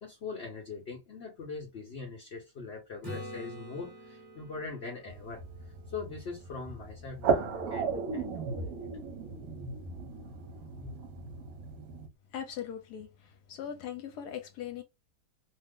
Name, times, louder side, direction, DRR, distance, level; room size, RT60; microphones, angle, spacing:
voice 1, 0.0-5.4 5.9-8.9 10.8-10.9, left 4 dB, 50° left, 0.9 m, -42 dB
Acoustic guitar / Strum, 3.0-6.8 11.6-11.7, equal, 15° right, 1.0 m, -47 dB
sound 1, 5.1-12.1, right 5 dB, 65° right, 1.1 m, -35 dB
voice 2, 12.3-13.1 13.5-14.8, left 9 dB, 80° left, 1.2 m, -39 dB
2.8 x 2.0 x 3.5 m
omnidirectional pair, 1.8 m